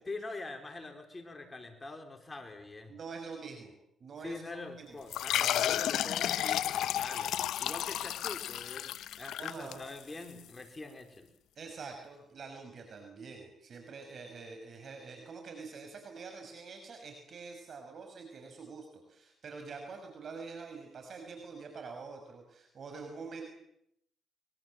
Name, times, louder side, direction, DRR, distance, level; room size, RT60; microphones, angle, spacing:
voice 1, 0.1-3.0 4.2-11.3, left 3 dB, 25° left, 5 dB, 4.3 m, -44 dB
voice 2, 2.9-3.7 4.0-5.0 5.3-5.8 7.1-7.2 9.4-9.8 11.6-23.4, right 4 dB, 50° right, 4 dB, 5.9 m, -46 dB
sound 1, 5.1-10.3, left 11 dB, 80° left, 1.0 m, -32 dB
25.5 x 24.0 x 7.7 m, 0.75 s
cardioid pair, 90°, 0 cm